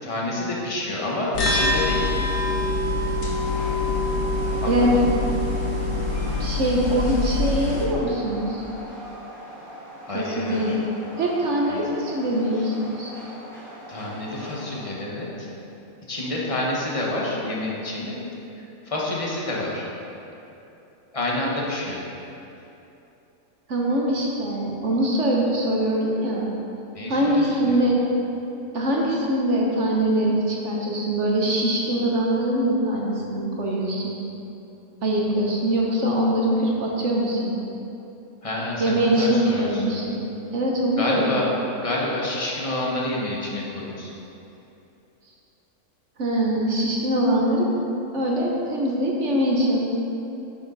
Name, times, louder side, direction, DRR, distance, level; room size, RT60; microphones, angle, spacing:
voice 1, 0.0-2.1 4.6-5.2 10.1-10.8 11.7-11.9 12.5-12.7 13.9-15.5 16.1-18.2 18.6-19.9 21.1-22.0 26.9-27.8 38.4-40.0 41.0-44.2, left 1 dB, 25° left, -4 dB, 1.4 m, -28 dB
sound 1, 1.3-7.8, left 2 dB, 65° left, 1.6 m, -24 dB
Train, 3.2-15.1, equal, ahead, 2.1 m, -41 dB
voice 2, 6.4-8.6 10.1-10.8 11.2-13.1 23.7-26.5 27.1-28.0 28.7-34.2 35.0-37.6 38.8-40.2 40.5-41.2 46.2-47.7 48.1-49.8, right 1 dB, 60° right, -2 dB, 1.3 m, -23 dB
10.0 x 7.0 x 4.0 m, 2.9 s
omnidirectional pair, 1.5 m